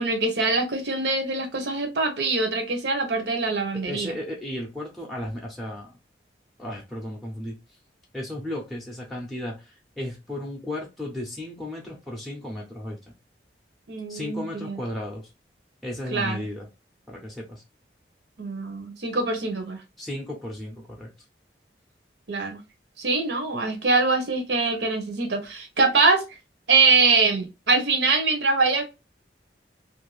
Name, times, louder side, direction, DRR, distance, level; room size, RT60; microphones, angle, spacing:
voice 1, 0.0-4.1 13.9-14.8 16.1-16.4 18.4-19.8 22.3-22.6 23.0-26.2 26.7-28.8, right 3 dB, 75° right, 0.7 m, -23 dB
voice 2, 3.9-6.0 6.6-7.6 8.1-13.0 14.1-15.3 15.8-16.7 17.1-17.6 20.0-21.1, left 1 dB, ahead, 0.5 m, -34 dB
2.5 x 2.2 x 3.0 m
head